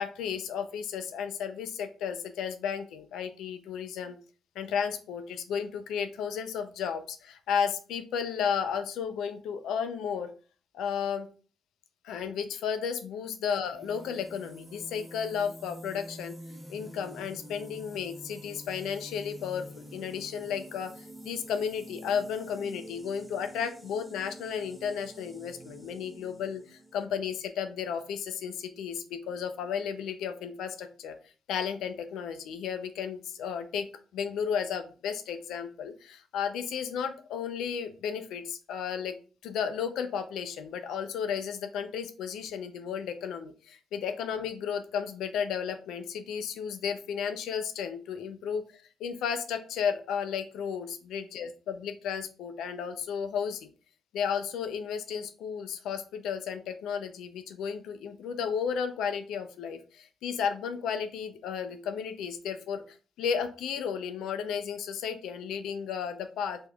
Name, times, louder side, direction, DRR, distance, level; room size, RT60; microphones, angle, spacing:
voice 1, 0.0-4.2 4.6-10.3 10.7-11.3 12.0-16.3 16.7-20.9 21.2-31.2 31.5-33.9 34.1-39.1 39.4-48.6 49.0-53.7 54.1-66.6, left 7 dB, 85° left, 8 dB, 0.4 m, -33 dB
sound 1, 13.6-27.1, equal, ahead, 0.8 m, -47 dB
3.4 x 3.0 x 2.3 m, 0.37 s
cardioid pair, 90°, 0 cm